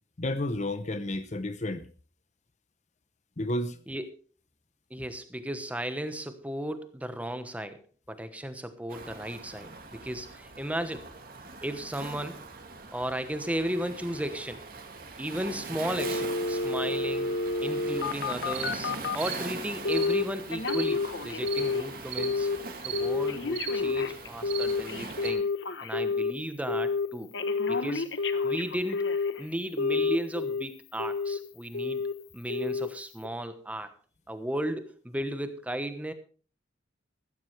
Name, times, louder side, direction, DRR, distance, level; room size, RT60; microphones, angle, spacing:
voice 1, 0.2-1.9 3.4-3.8, left 1 dB, 40° left, 0.8 m, -31 dB
voice 2, 4.9-11.1 11.6-12.4 12.9-14.6 15.2-22.5 22.8-25.5 25.8-27.3 27.7-28.1 28.4-29.1 29.4-32.1 32.3-33.9 34.3-36.1, right 1 dB, 10° right, 1.1 m, -35 dB
Waves surf, 8.9-25.3, right 3 dB, 50° right, 2.5 m, -42 dB
Telephone, 16.0-19.3 19.9-20.2 20.5-21.9 22.2-22.6 22.9-26.3 26.7-27.1 27.3-29.4 29.8-30.6 31.0-31.4 31.7-32.1 32.5-32.9 33.2-33.3, left 4 dB, 75° left, 1.0 m, -29 dB
sound 1, 18.5-18.7 19.2-19.4 19.9-20.1 20.6-20.9 21.4-21.6 22.1-22.3 22.8-23.0 23.5-23.7 24.5-24.7 25.2-25.3, right 9 dB, 75° right, 4.0 m, -36 dB
14.5 x 14.0 x 3.3 m
head